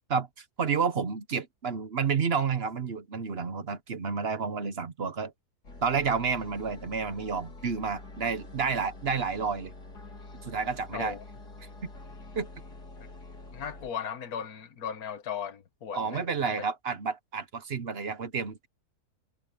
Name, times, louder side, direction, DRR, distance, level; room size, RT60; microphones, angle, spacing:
voice 1, 0.1-5.3 5.8-9.7 10.4-11.2 12.3-12.5 15.9-18.7, right 5 dB, 45° right, 1.1 m, -30 dB
sound 1, 5.6-13.9, left 2 dB, 90° left, 4.5 m, -46 dB
voice 2, 10.9-11.2 13.5-16.6, left 8 dB, 70° left, 1.8 m, -37 dB
omnidirectional pair, 1.7 m